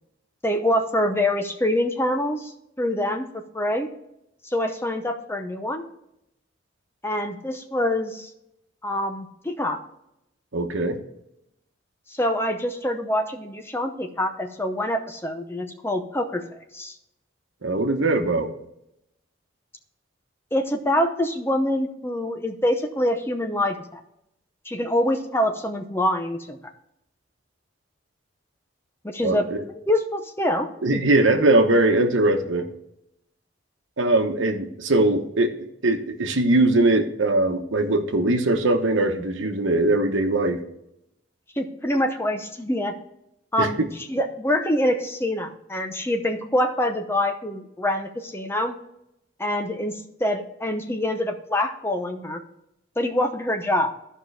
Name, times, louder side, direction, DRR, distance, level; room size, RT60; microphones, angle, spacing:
voice 1, 0.4-3.9 4.4-5.8 7.0-8.3 8.8-9.8 12.1-17.0 20.5-24.0 24.6-26.6 29.0-29.5 29.7-31.0 41.6-42.9 43.5-43.8 44.1-48.7 49.4-52.4 53.0-53.9, left 1 dB, 10° left, 5 dB, 0.7 m, -25 dB
voice 2, 10.5-11.0 17.6-18.5 29.2-29.6 30.8-32.7 34.0-35.5 35.8-40.6 43.6-43.9, right 2 dB, 85° right, 6 dB, 1.1 m, -21 dB
14.0 x 5.4 x 3.3 m, 0.81 s
head